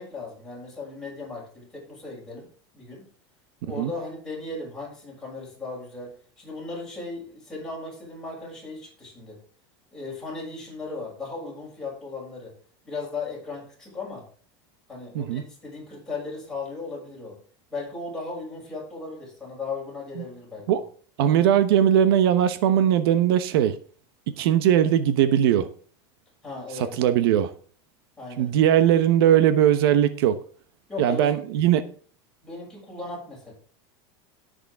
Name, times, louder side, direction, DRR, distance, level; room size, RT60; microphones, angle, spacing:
voice 1, 0.0-2.5 2.7-3.0 3.6-9.4 9.9-12.5 12.8-14.3 14.9-17.4 17.7-20.8 26.4-27.2 28.2-28.5 30.9-31.4 32.4-33.5, left 3 dB, 5° left, 6.5 m, -37 dB
voice 2, 21.2-23.8 24.4-25.7 26.7-27.5 28.4-30.4 31.0-31.8, right 10 dB, 70° right, 1.0 m, -20 dB
18.5 x 6.7 x 3.6 m
supercardioid pair, 160°, 13 cm